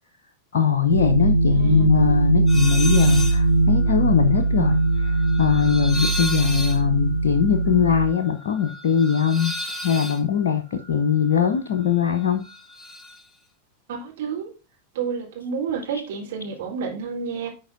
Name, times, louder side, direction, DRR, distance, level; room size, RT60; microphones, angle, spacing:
voice 1, 0.5-4.8 5.0-9.5 9.8-12.4, left 8 dB, 55° left, 4 dB, 0.8 m, -21 dB
sound 1, 0.9-8.1, right 2 dB, 80° right, 1.0 m, -20 dB
voice 2, 1.5-1.8 13.9-14.5 14.9-17.5, right 6 dB, 55° right, -2 dB, 3.8 m, -30 dB
sound 2, 2.5-3.4 3.7-11.9 12.2-13.2, left 1 dB, 10° left, 1.4 m, -34 dB
11.5 x 5.4 x 2.6 m, 0.32 s
figure-of-eight pair, 90°, 0 cm